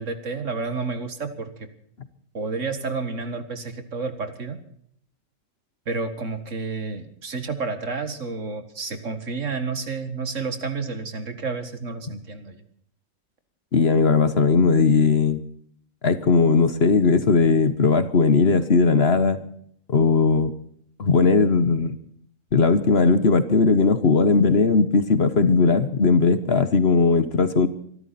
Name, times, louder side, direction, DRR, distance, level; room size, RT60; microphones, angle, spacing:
voice 1, 0.0-1.7 2.3-4.6 5.9-12.6, right 4 dB, 65° right, 9 dB, 2.1 m, -30 dB
voice 2, 13.7-15.4 16.0-19.4 19.9-20.5 21.0-22.0 22.5-27.7, left 4 dB, 50° left, 12 dB, 1.3 m, -18 dB
25.0 x 12.5 x 4.2 m, 0.65 s
omnidirectional pair, 1.4 m